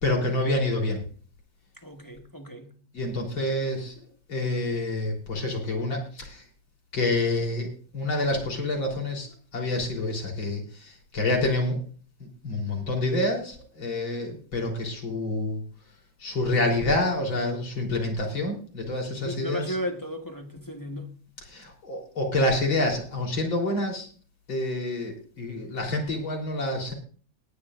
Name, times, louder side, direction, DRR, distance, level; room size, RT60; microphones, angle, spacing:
voice 1, 0.0-1.0 2.9-3.9 4.3-6.4 6.9-7.7 7.9-11.8 12.2-15.6 16.2-19.7 21.5-24.1 24.5-26.9, left 2 dB, 80° left, 4.5 m, -27 dB
voice 2, 1.8-2.7 19.2-21.2, left 1 dB, 15° left, 0.9 m, -35 dB
19.0 x 10.5 x 2.5 m
omnidirectional pair, 2.1 m